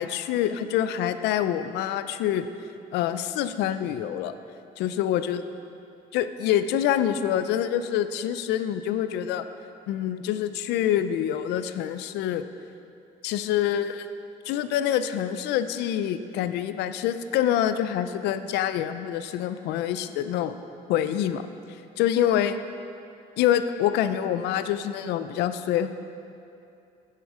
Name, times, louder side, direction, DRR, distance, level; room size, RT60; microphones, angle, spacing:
voice 1, 0.0-2.5 2.9-4.4 4.8-5.4 6.1-9.5 9.9-12.5 13.2-14.1 14.5-20.6 20.9-21.4 22.0-22.6 23.4-25.9, left 10 dB, 85° left, 11 dB, 0.5 m, -26 dB
9.5 x 9.0 x 4.9 m, 2.6 s
cardioid pair, 110°, 17 cm